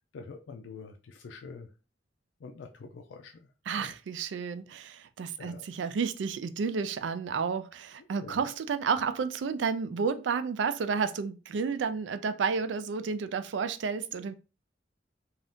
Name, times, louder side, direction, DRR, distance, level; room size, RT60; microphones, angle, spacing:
voice 1, 0.1-1.7 2.4-3.5 3.8-3.9 5.4-5.7 8.0-8.4, left 4 dB, 90° left, 0.4 m, -46 dB
voice 2, 3.7-14.3, right 5 dB, 80° right, 0.4 m, -31 dB
2.7 x 2.4 x 3.4 m
head